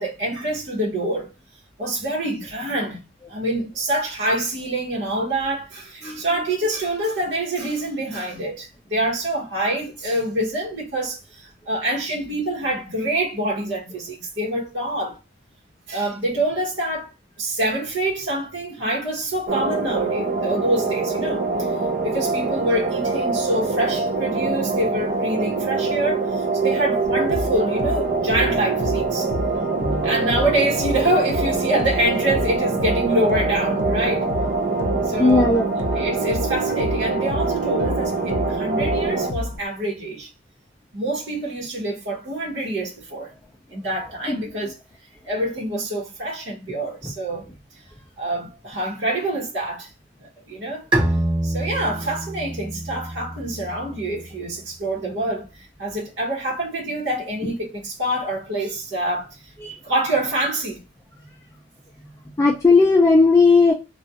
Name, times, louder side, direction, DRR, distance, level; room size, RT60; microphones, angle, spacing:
voice 1, 0.0-1.3 1.8-3.0 3.3-15.2 15.9-17.1 17.4-21.7 22.0-29.3 30.0-34.3 35.1-35.5 35.9-40.3 40.9-43.3 43.7-44.8 45.2-47.5 48.2-49.9 50.2-50.9 51.4-59.5 59.8-60.8, right 1 dB, 75° right, 1.0 m, -26 dB
voice 2, 6.0-6.6 29.8-30.5 33.0-33.1 35.1-35.6 44.2-44.6 47.0-47.1 57.4-57.5 59.6-59.8 62.4-63.7, left 3 dB, 15° left, 0.4 m, -18 dB
sound 1, 19.5-39.3, right 4 dB, 45° right, 0.5 m, -24 dB
sound 2, 27.0-39.6, left 2 dB, 70° left, 0.6 m, -31 dB
Bowed string instrument, 50.9-54.4, right 1 dB, 25° right, 0.9 m, -26 dB
2.3 x 2.3 x 2.7 m
head